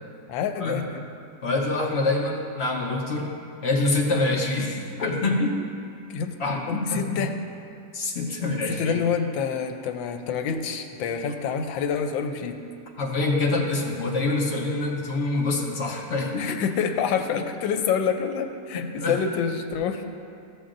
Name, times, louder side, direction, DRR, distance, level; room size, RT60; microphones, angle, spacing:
voice 1, 0.3-1.1 6.1-7.3 8.7-12.6 16.4-20.0, left 6 dB, 90° left, 6 dB, 1.3 m, -27 dB
voice 2, 1.4-3.3 3.6-5.7 6.4-7.2 7.9-9.0 13.0-16.6 18.7-19.2, left 2 dB, 55° left, -1 dB, 0.7 m, -26 dB
14.0 x 7.2 x 2.5 m, 2.4 s
omnidirectional pair, 2.0 m